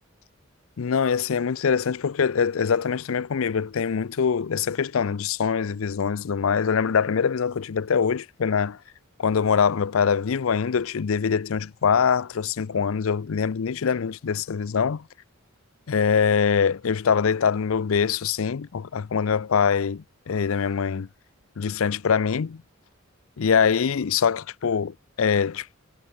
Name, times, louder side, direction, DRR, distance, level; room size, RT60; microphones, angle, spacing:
voice 1, 0.8-8.8 9.2-15.0 15.9-21.1 21.6-22.6 23.4-25.7, left 6 dB, 70° left, 0.5 m, -23 dB
head